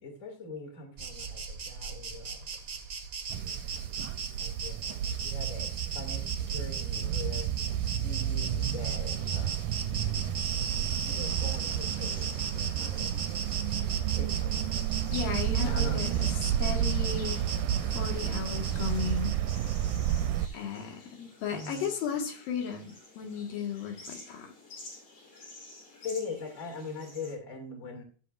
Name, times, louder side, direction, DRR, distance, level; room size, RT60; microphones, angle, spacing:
voice 1, 0.0-2.8 4.4-7.5 8.0-10.0 11.0-13.1 14.1-14.9 15.6-16.2 16.7-16.9 21.5-21.8 26.0-28.0, left 4 dB, 25° left, 3 dB, 2.3 m, -42 dB
Insect, 1.0-20.1, right 5 dB, 60° right, 0.9 m, -38 dB
sound 1, 3.3-20.5, right 11 dB, 80° right, 1.9 m, -31 dB
sound 2, 8.6-27.4, left 2 dB, 55° left, 4.7 m, -52 dB
voice 2, 15.1-17.4 17.9-19.4 20.5-24.5, left 7 dB, 80° left, 2 dB, 3.4 m, -35 dB
16.0 x 7.4 x 2.5 m, 0.39 s
omnidirectional pair, 4.0 m